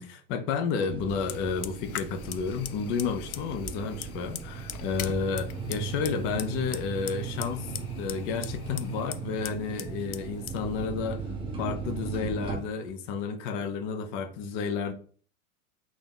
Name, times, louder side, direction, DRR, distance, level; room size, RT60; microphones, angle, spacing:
voice 1, 0.0-7.7 8.0-11.2 11.6-14.9, left 5 dB, 25° left, 0.6 m, -31 dB
sound 1, 0.9-12.6, right 5 dB, 10° right, 0.7 m, -38 dB
Fire, 1.1-12.9, left 9 dB, 75° left, 0.5 m, -42 dB
4.0 x 2.9 x 3.8 m
figure-of-eight pair, 95°, 43 cm